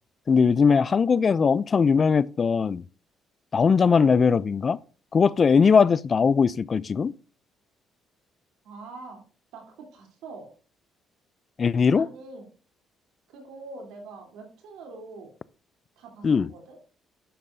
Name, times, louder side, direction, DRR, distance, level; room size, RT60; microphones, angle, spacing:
voice 1, 0.3-2.8 3.5-4.8 5.1-7.1 11.6-12.1 16.2-16.5, left 5 dB, 35° left, 0.3 m, -20 dB
voice 2, 8.6-9.2 9.5-10.5 11.9-12.5 13.3-15.3 16.0-16.8, right 3 dB, 90° right, 3.2 m, -44 dB
11.0 x 7.4 x 2.6 m
cardioid pair, 125°, 0 cm